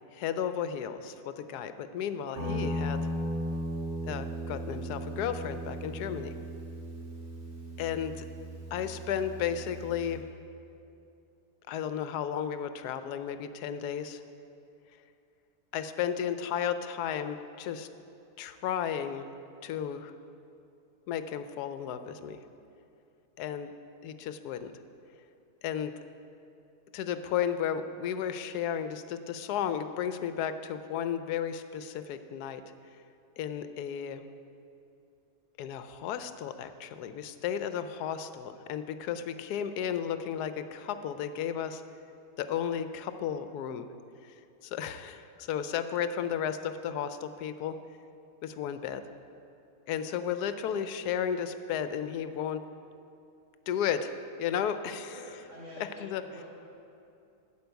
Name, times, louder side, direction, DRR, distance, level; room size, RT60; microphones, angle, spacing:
voice 1, 0.1-3.0 4.0-6.3 7.8-8.2 8.7-10.2 11.7-14.2 15.7-17.9 18.4-19.3 19.6-20.1 21.1-22.4 23.4-23.7 24.0-24.7 25.6-25.9 26.9-32.6 33.4-34.2 35.6-41.8 42.4-43.9 44.2-44.3 44.6-47.7 48.4-49.0 49.9-52.6 53.7-54.1 54.4-55.2 56.0-56.2, left 8 dB, 75° left, 10 dB, 1.1 m, -33 dB
Guitar, 2.3-10.2, equal, 45° right, 2.8 m, -36 dB
voice 2, 55.1-56.4, left 1 dB, 20° right, -10 dB, 2.3 m, -47 dB
11.5 x 5.2 x 8.0 m, 2.6 s
omnidirectional pair, 1.7 m